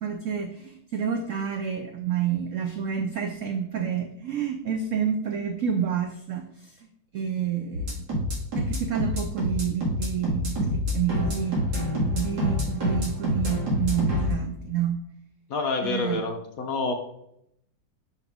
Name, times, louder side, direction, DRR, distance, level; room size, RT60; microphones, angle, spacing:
voice 1, 0.0-6.7 7.1-8.0 8.5-11.6 12.1-15.0 15.8-16.2, right 8 dB, 85° right, 6 dB, 0.6 m, -29 dB
sound 1, 7.7-14.3, left 1 dB, 60° right, 2.6 m, -26 dB
voice 2, 15.5-16.9, left 3 dB, 60° left, 4 dB, 1.1 m, -28 dB
5.8 x 5.6 x 3.5 m, 0.75 s
omnidirectional pair, 2.0 m